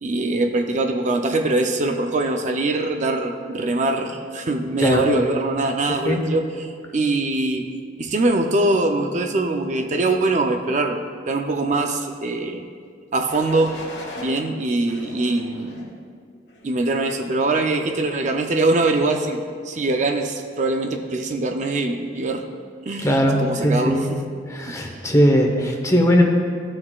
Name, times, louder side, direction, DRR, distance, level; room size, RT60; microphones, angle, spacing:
voice 1, 0.0-7.7 8.0-12.6 13.1-13.8 14.2-15.9 16.6-22.4 22.8-24.2 24.7-25.0, right 2 dB, 40° right, 4 dB, 0.5 m, -23 dB
sound 1, 13.3-14.3 14.9-15.9 16.5-16.9, left 1 dB, 65° left, 1.5 m, -38 dB
voice 2, 23.0-24.0 24.5-26.2, equal, 20° left, 1 dB, 0.9 m, -19 dB
15.0 x 6.1 x 2.3 m, 2.1 s
head